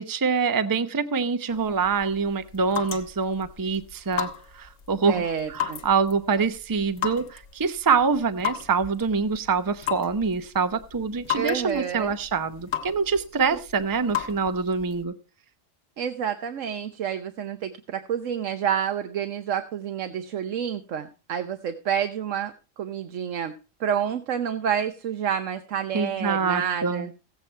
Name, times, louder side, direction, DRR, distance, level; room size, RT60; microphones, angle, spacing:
voice 1, 0.0-4.3 4.5-5.2 5.5-15.1 25.9-27.1, right 5 dB, 20° right, 10 dB, 0.6 m, -25 dB
sound 1, 1.5-15.0, left 10 dB, 60° left, 1.4 m, -36 dB
voice 2, 5.0-5.8 11.3-12.1 16.0-23.5 23.8-27.1, right 8 dB, 75° right, 7 dB, 1.2 m, -29 dB
15.5 x 8.4 x 4.3 m, 0.32 s
omnidirectional pair, 1.3 m